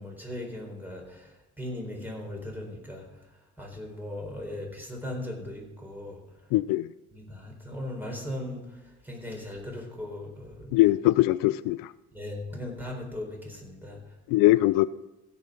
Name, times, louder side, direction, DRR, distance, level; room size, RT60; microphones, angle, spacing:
voice 1, 0.0-3.1 3.6-6.2 7.1-10.8 12.1-14.0, left 1 dB, 5° right, 0 dB, 4.0 m, -38 dB
voice 2, 6.5-6.9 10.7-11.9 14.3-14.9, left 17 dB, 85° left, 16 dB, 0.5 m, -21 dB
16.0 x 6.0 x 6.0 m, 1.0 s
cardioid pair, 100°, 32 cm